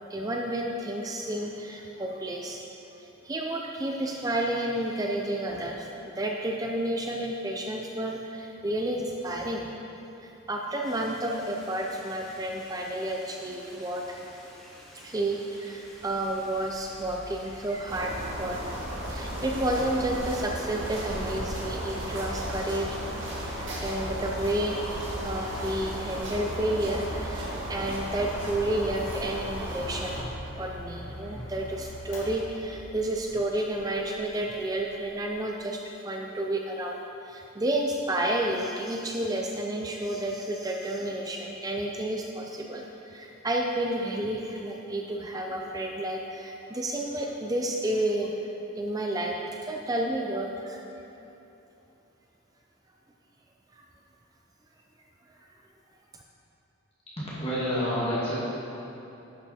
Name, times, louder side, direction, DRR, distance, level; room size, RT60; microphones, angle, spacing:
voice 1, 0.1-9.7 10.2-14.3 14.9-18.7 19.1-23.0 23.5-37.0 37.2-48.5 48.8-50.9 53.7-53.8 55.3-55.4 56.1-56.2, right 1 dB, 20° right, 0 dB, 0.5 m, -31 dB
Stream, 10.8-26.6, equal, 5° left, 1.7 m, -51 dB
Mechanical fan, 15.8-35.5, equal, 65° left, 1.9 m, -44 dB
sound 1, 17.9-30.2, right 1 dB, 65° right, 1.8 m, -35 dB
voice 2, 57.2-58.4, equal, 30° left, -9 dB, 2.0 m, -28 dB
11.5 x 5.8 x 4.2 m, 3.0 s
head